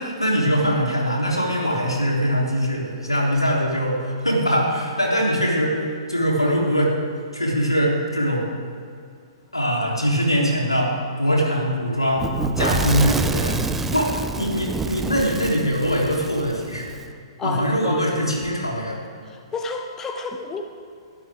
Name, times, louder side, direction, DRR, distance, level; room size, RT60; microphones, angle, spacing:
voice 1, 0.0-6.9 7.3-8.5 9.5-13.6 13.9-17.0 17.4-19.0, equal, 85° left, -2 dB, 3.5 m, -22 dB
Fire / Explosion, 12.2-17.0, right 3 dB, 10° right, 0.6 m, -27 dB
voice 2, 17.4-18.1 19.3-20.6, left 4 dB, 15° left, 5 dB, 1.0 m, -30 dB
22.0 x 12.5 x 3.6 m, 2.3 s
figure-of-eight pair, 115°, 3 cm